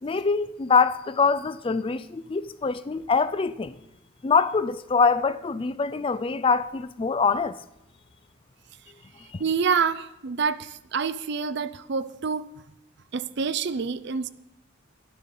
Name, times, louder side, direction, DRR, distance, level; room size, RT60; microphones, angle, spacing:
voice 1, 0.0-3.7 4.2-7.6 9.3-9.4, left 5 dB, 25° left, 0.4 m, -24 dB
voice 2, 9.4-12.5 13.1-14.3, right 5 dB, 55° right, 0.5 m, -27 dB
12.0 x 12.0 x 5.4 m
head